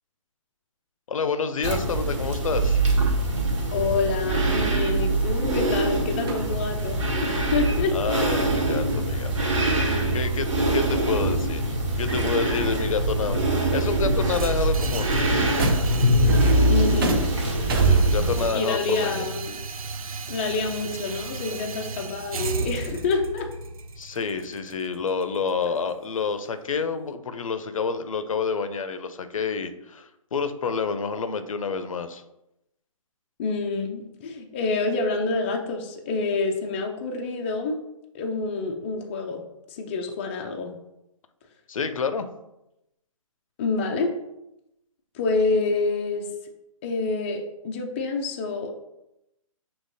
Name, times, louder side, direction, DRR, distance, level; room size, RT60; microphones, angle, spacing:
voice 1, 1.1-2.8 7.9-9.6 10.1-15.1 17.8-19.2 24.0-32.2 41.7-42.3, left 5 dB, 70° left, 10 dB, 0.5 m, -28 dB
sound 1, 1.6-18.5, right 2 dB, 60° right, 1.4 m, -23 dB
voice 2, 3.7-8.0 16.7-17.2 18.5-19.6 20.3-23.5 33.4-37.8 38.1-39.4 39.7-40.7 43.6-44.1 45.1-46.3 46.8-48.7, left 3 dB, 20° left, 2 dB, 0.4 m, -27 dB
sound 2, 6.3-7.0 8.5-11.6 11.9-12.9 13.2-14.1 14.3-21.3, right 2 dB, 40° right, 0.7 m, -35 dB
sound 3, 14.2-26.3, right 4 dB, 80° right, 0.5 m, -36 dB
6.3 x 2.9 x 2.7 m, 0.88 s
hypercardioid pair, 150°, 18 cm